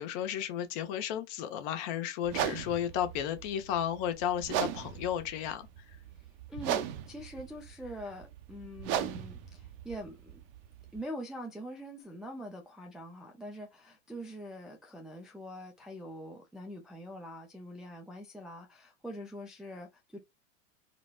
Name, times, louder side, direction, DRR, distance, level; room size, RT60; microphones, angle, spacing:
voice 1, 0.0-5.7, left 10 dB, 45° left, 0.8 m, -33 dB
sound 1, 2.3-11.0, right 10 dB, 50° right, 0.6 m, -38 dB
voice 2, 6.2-10.4 10.9-20.2, equal, ahead, 0.3 m, -44 dB
4.0 x 2.1 x 2.2 m
hypercardioid pair, 105°, 36 cm